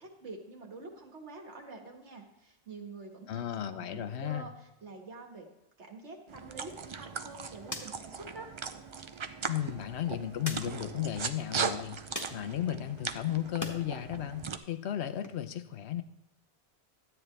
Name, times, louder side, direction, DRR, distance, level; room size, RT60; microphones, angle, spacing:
voice 1, 0.0-5.5 5.8-8.5, right 3 dB, 85° right, 2 dB, 1.8 m, -47 dB
voice 2, 3.3-4.5 9.5-16.0, left 11 dB, 75° left, 10 dB, 1.0 m, -35 dB
sound 1, 6.3-14.6, right 5 dB, 50° right, 0.3 m, -39 dB
sound 2, 6.6-13.8 14.2-15.3, left 1 dB, 15° left, 1.2 m, -46 dB
12.5 x 8.7 x 3.2 m, 0.92 s
omnidirectional pair, 1.1 m